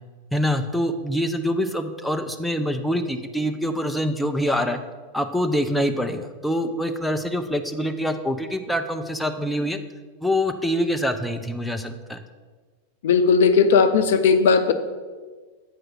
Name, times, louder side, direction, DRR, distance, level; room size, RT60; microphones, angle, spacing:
voice 1, 0.3-4.8 5.1-9.8 10.2-12.2, equal, ahead, 6 dB, 0.5 m, -25 dB
voice 2, 13.0-14.7, left 5 dB, 55° left, 10 dB, 0.6 m, -17 dB
8.4 x 4.6 x 6.3 m, 1.4 s
figure-of-eight pair, 90°, 0 cm